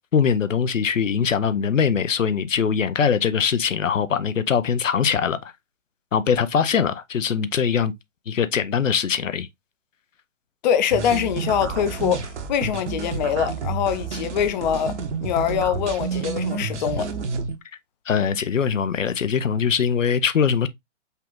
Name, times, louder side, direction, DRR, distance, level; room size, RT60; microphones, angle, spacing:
voice 1, 0.1-5.5 6.1-7.9 8.3-9.5 18.1-20.7, left 7 dB, 80° left, 0.7 m, -22 dB
voice 2, 10.6-17.1, left 8 dB, 35° left, 0.6 m, -24 dB
sound 1, 10.9-17.6, right 5 dB, 65° right, 1.1 m, -29 dB
5.5 x 2.5 x 3.6 m
figure-of-eight pair, 130°, 38 cm